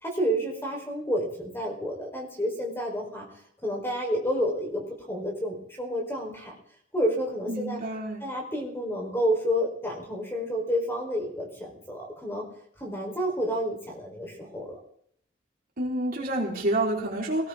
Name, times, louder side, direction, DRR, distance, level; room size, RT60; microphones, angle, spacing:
voice 1, 0.0-3.3 3.6-6.5 6.9-7.8 8.2-12.4 12.8-14.8, equal, 10° left, 0 dB, 4.1 m, -30 dB
voice 2, 7.5-8.3 15.8-17.5, right 1 dB, 50° right, -2 dB, 4.3 m, -28 dB
19.0 x 18.0 x 3.7 m, 0.65 s
head